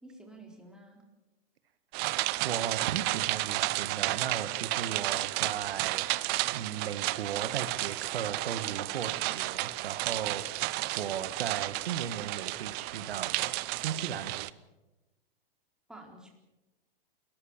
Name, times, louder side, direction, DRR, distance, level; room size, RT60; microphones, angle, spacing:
voice 1, 0.0-1.0 15.9-16.3, right 2 dB, ahead, 1 dB, 4.2 m, -50 dB
sound 1, 1.9-14.5, right 20 dB, 35° right, 0.7 m, -32 dB
voice 2, 2.4-14.3, right 8 dB, 85° right, 12 dB, 1.7 m, -37 dB
30.0 x 14.5 x 7.3 m, 1.1 s
hypercardioid pair, 140°, 29 cm